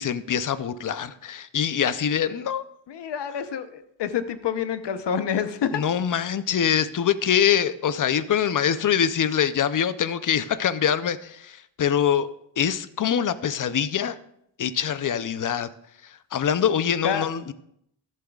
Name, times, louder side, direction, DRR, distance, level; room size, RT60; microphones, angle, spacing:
voice 1, 0.0-2.6 5.7-12.3 12.6-14.2 14.6-15.7 16.3-17.5, left 8 dB, 45° left, 14 dB, 0.6 m, -24 dB
voice 2, 2.9-5.8 17.0-17.3, left 8 dB, 65° left, 10 dB, 0.9 m, -27 dB
14.0 x 7.6 x 2.4 m, 0.73 s
cardioid pair, 85°, 45 cm